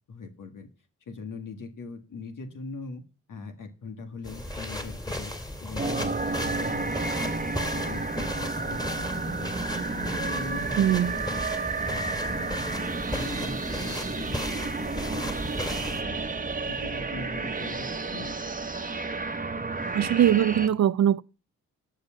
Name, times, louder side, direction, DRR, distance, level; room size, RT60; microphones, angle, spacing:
voice 1, 0.1-0.7 1.0-3.0 3.3-5.3 5.6-7.4 7.7-9.5 9.8-11.4 11.9-14.4 14.8-15.3 15.6-16.2 16.5-18.4, left 3 dB, 65° left, 1.9 m, -41 dB
sound 1, 4.2-16.0, left 1 dB, 10° left, 2.4 m, -36 dB
sound 2, 5.8-20.7, right 3 dB, 25° right, 1.3 m, -31 dB
voice 2, 10.8-11.2 19.9-21.2, right 10 dB, 55° right, 0.6 m, -21 dB
13.0 x 5.3 x 7.1 m
supercardioid pair, 45°, 34 cm